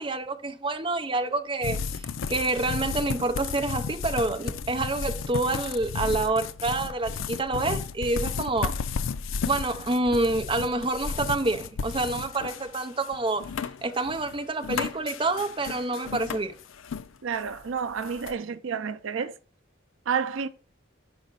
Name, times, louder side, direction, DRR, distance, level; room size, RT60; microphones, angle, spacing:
voice 1, 0.0-2.0 2.3-8.8 9.5-13.5 13.8-16.5, right 2 dB, 25° right, 0.7 m, -27 dB
sound 1, 1.6-17.1 17.3-18.3, left 5 dB, 85° left, 0.4 m, -33 dB
voice 2, 17.2-19.4 20.1-20.5, right 6 dB, 85° right, 0.5 m, -30 dB
6.3 x 5.0 x 3.9 m
head